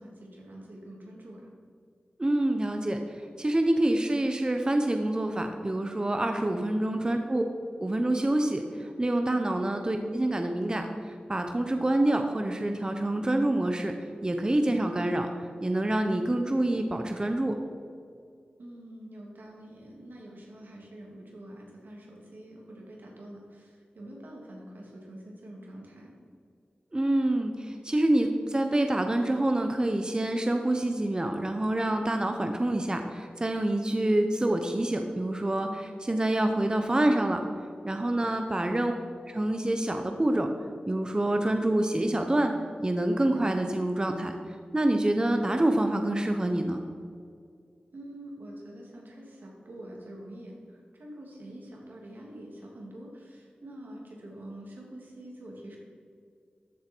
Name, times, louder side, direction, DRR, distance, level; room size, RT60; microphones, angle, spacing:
voice 1, 0.0-1.5 18.6-26.1 47.9-55.8, right 1 dB, 85° right, -1 dB, 2.5 m, -46 dB
voice 2, 2.2-3.0 3.4-7.4 7.8-8.6 9.0-13.9 14.2-15.3 15.6-17.5 26.9-37.4 37.8-38.9 39.2-40.5 40.9-42.5 42.8-44.3 44.7-46.8, right 1 dB, 25° right, 5 dB, 0.8 m, -26 dB
14.0 x 7.5 x 4.5 m, 2.2 s
wide cardioid pair, 85°, 3 cm